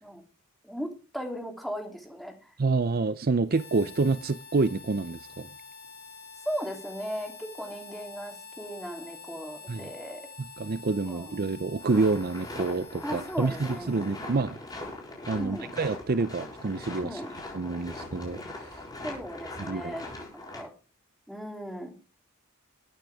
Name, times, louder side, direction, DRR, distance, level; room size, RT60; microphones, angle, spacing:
voice 1, 0.6-2.5 6.4-10.2 11.0-11.3 13.0-13.9 15.4-15.7 17.0-17.3 19.0-20.7 21.3-21.9, equal, ahead, 3.1 m, -37 dB
voice 2, 2.6-5.5 9.7-9.9 10.4-14.6 15.3-17.2 17.5-18.8 19.6-20.0, right 3 dB, 45° right, 0.5 m, -28 dB
Harmonica, 3.5-14.6, left 4 dB, 55° left, 5.4 m, -48 dB
sound 1, 11.8-20.6, left 2 dB, 20° left, 6.2 m, -41 dB
21.0 x 9.2 x 3.5 m
head